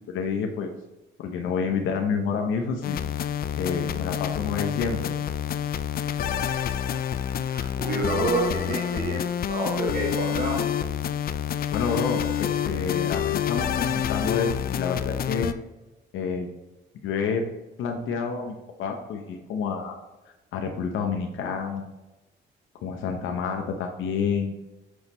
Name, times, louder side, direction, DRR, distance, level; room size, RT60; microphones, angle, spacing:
voice 1, 0.1-0.7 1.2-3.0 3.6-5.1 11.7-15.5 16.1-16.5 17.0-17.5 17.8-20.0 20.5-21.9 22.8-24.6, left 5 dB, 80° left, 3 dB, 0.7 m, -29 dB
sound 1, 2.8-15.5, left 9 dB, 50° left, 0.4 m, -28 dB
voice 2, 7.2-10.7, right 2 dB, 45° right, -3 dB, 1.4 m, -29 dB
6.3 x 5.2 x 3.0 m, 1.1 s
cardioid pair, 90°, 20 cm